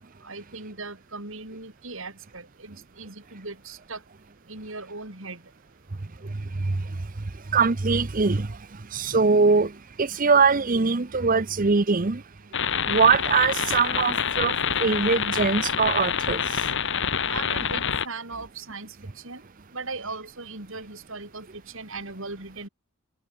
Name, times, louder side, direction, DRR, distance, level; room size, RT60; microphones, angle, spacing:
voice 1, 0.2-4.0 4.5-5.4 17.3-19.0 19.2-19.4 19.7-22.7, right 3 dB, 60° right, 4.6 m, -38 dB
voice 2, 7.5-8.6 8.9-9.7 10.0-12.2 12.9-14.5 14.8-16.6, right 4 dB, 40° right, 0.7 m, -22 dB
sound 1, 12.5-18.1, left 7 dB, 55° left, 1.7 m, -26 dB
head